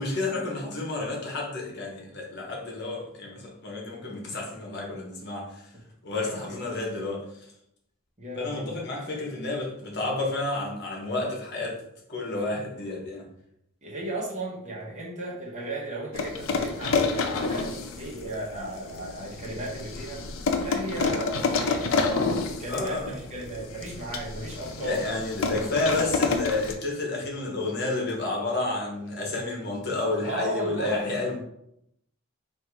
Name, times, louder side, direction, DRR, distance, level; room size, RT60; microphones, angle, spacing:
voice 1, 0.0-5.7 6.0-7.5 8.3-11.8 12.1-13.2 22.7-23.1 24.8-31.4, left 2 dB, 50° left, -2 dB, 1.0 m, -30 dB
voice 2, 5.7-6.6 8.2-8.7 13.8-20.2 20.6-25.1 25.4-25.5 30.2-31.4, right 1 dB, 35° right, -4 dB, 1.1 m, -35 dB
sound 1, 16.1-26.7, left 4 dB, 70° left, 0.5 m, -29 dB
3.6 x 2.6 x 4.6 m, 0.77 s
head